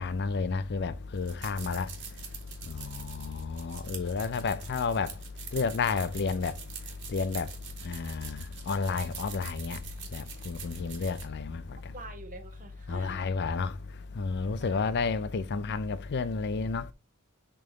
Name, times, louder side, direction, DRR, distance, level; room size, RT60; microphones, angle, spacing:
voice 1, 0.0-1.9 2.7-5.1 5.5-6.5 7.1-7.5 7.9-9.8 10.1-11.6 12.9-13.7 14.2-16.9, left 4 dB, 50° left, 0.5 m, -31 dB
sound 1, 1.1-11.3, right 8 dB, 55° right, 1.7 m, -45 dB
voice 2, 11.9-13.3 14.6-15.0, right 2 dB, 35° right, 1.3 m, -46 dB
6.7 x 3.5 x 4.9 m
head